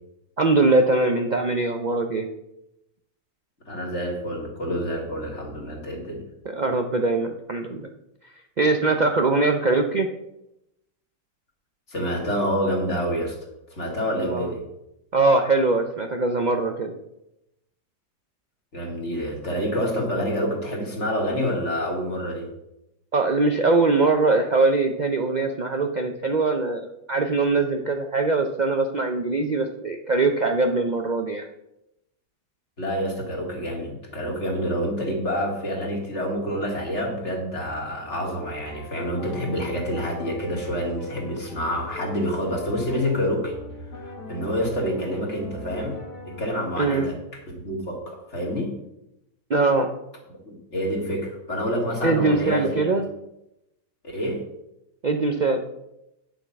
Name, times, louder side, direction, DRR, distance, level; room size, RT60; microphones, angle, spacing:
voice 1, 0.4-2.3 6.4-7.9 8.6-10.1 14.2-14.5 15.1-16.9 23.1-31.5 46.8-47.1 49.5-49.9 52.0-53.1 55.0-55.6, right 3 dB, 75° right, 4 dB, 0.4 m, -22 dB
voice 2, 3.7-6.2 11.9-13.4 13.7-14.6 18.7-22.5 32.8-43.5 43.9-46.0 46.4-47.1 47.5-48.7 50.4-52.9 54.0-54.4, equal, 45° left, 0 dB, 2.5 m, -27 dB
sound 1, 37.8-46.5, left 2 dB, 80° left, 2.9 m, -39 dB
9.2 x 6.6 x 5.8 m, 0.88 s
omnidirectional pair, 1.8 m